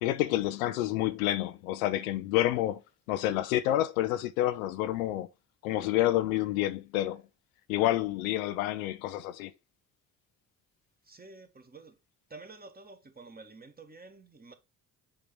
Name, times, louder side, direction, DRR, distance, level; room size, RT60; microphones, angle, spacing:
voice 1, 0.0-2.8 3.1-5.3 5.6-7.2 7.7-9.5, left 14 dB, 85° left, 0.5 m, -28 dB
voice 2, 11.0-12.0 12.3-14.5, right 3 dB, 20° right, 1.6 m, -50 dB
7.1 x 2.8 x 5.2 m
hypercardioid pair, 50°, 41 cm